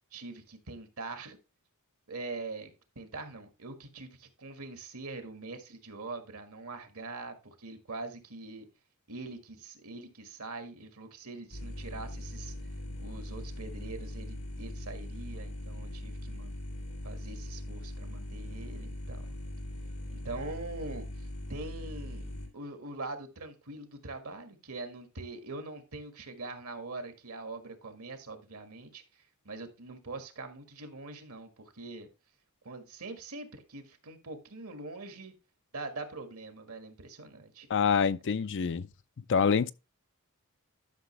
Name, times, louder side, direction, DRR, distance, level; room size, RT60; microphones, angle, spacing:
voice 1, 0.1-1.4 2.1-8.7 9.1-12.5 13.0-16.5 17.0-19.3 20.1-29.0 29.4-32.1 32.6-35.3 35.7-37.7, right 3 dB, 70° right, 1.6 m, -43 dB
sound 1, 11.5-22.5, left 1 dB, 85° left, 3.2 m, -40 dB
voice 2, 37.7-38.9 39.3-39.7, left 6 dB, 55° left, 0.5 m, -26 dB
11.5 x 6.0 x 3.2 m
head